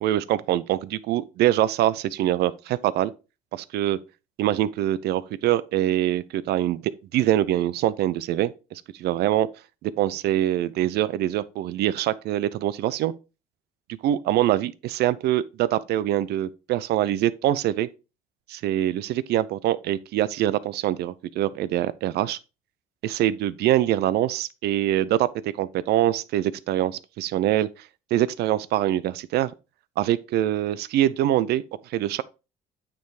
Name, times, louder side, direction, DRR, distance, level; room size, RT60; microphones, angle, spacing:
voice 1, 0.0-3.1 3.5-4.0 4.4-6.8 7.1-8.5 8.9-9.5 9.8-13.1 14.0-17.9 18.5-22.4 23.0-25.3 25.6-27.7 28.1-29.5 30.0-32.2, right 13 dB, 75° right, 0.6 m, -24 dB
9.2 x 3.5 x 4.7 m
cardioid pair, 110°, 17 cm